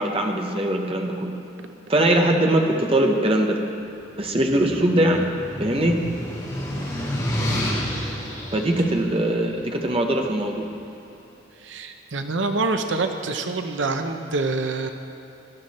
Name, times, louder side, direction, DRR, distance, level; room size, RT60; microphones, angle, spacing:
voice 1, 0.0-1.4 1.9-3.6 4.2-5.2 5.6-6.0 8.5-10.7, right 1 dB, 30° right, 2 dB, 1.0 m, -21 dB
sound 1, 4.0-10.3, equal, 20° left, 3.1 m, -30 dB
voice 2, 11.6-14.9, right 3 dB, 80° right, 6 dB, 0.8 m, -26 dB
18.0 x 12.0 x 4.3 m, 2.8 s
head